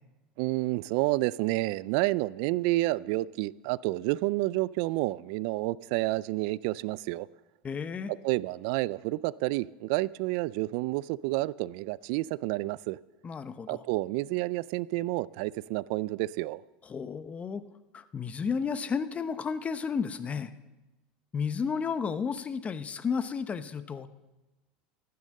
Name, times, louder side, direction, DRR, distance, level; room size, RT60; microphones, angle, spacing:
voice 1, 0.4-7.3 8.1-13.0 13.7-16.6, right 19 dB, 65° right, 21 dB, 0.3 m, -29 dB
voice 2, 7.6-8.1 13.2-13.8 16.8-17.6 17.9-20.5 21.3-24.1, left 6 dB, 25° left, 13 dB, 0.9 m, -32 dB
14.5 x 9.6 x 6.5 m, 1.1 s
hypercardioid pair, 100°, 5 cm